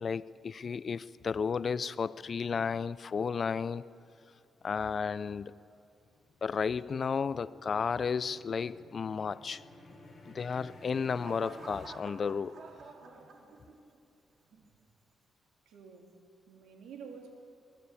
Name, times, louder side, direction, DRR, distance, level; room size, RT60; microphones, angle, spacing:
voice 1, 0.0-3.8 4.6-5.5 6.4-9.6 10.3-12.5, left 6 dB, 45° left, 18 dB, 0.5 m, -33 dB
sound 1, 5.7-12.7, left 2 dB, 25° left, 6.6 m, -55 dB
sound 2, 10.6-14.0 14.5-14.9, right 4 dB, 65° right, 3.5 m, -51 dB
voice 2, 15.6-16.1 16.5-17.3, right 6 dB, 90° right, 3 dB, 3.2 m, -49 dB
23.5 x 19.0 x 8.5 m, 2.5 s
cardioid pair, 105°, 0 cm